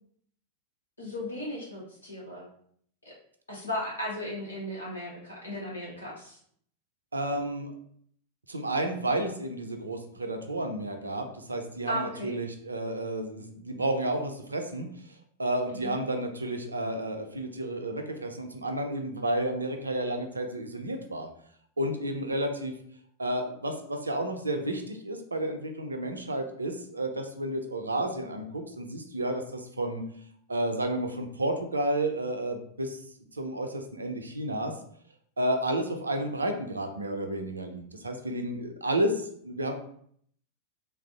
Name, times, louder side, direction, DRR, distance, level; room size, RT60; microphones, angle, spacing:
voice 1, 1.0-2.5 3.0-3.1 3.5-6.4 11.9-12.3 15.8-16.0, equal, 80° left, -5 dB, 1.1 m, -36 dB
voice 2, 7.1-7.7 8.5-14.9 15.4-21.3 21.8-22.7 23.2-30.0 30.5-33.0 33.3-34.7 35.4-39.7, right 1 dB, 80° right, 5 dB, 0.4 m, -31 dB
3.2 x 2.4 x 2.4 m, 0.63 s
figure-of-eight pair, 90°, 0 cm